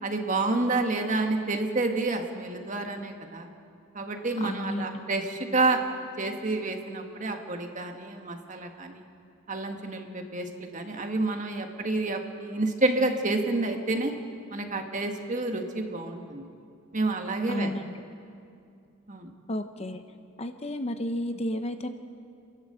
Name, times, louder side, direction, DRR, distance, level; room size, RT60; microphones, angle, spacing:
voice 1, 0.0-3.5 3.9-5.8 6.2-9.0 9.5-14.1 14.5-16.4 16.9-17.7 19.1-19.3, right 2 dB, 35° right, 4 dB, 1.6 m, -29 dB
voice 2, 4.4-5.0 17.5-17.9 19.5-20.0 20.4-21.9, left 1 dB, 30° left, 8 dB, 0.7 m, -32 dB
29.0 x 11.5 x 7.9 m, 2.5 s
head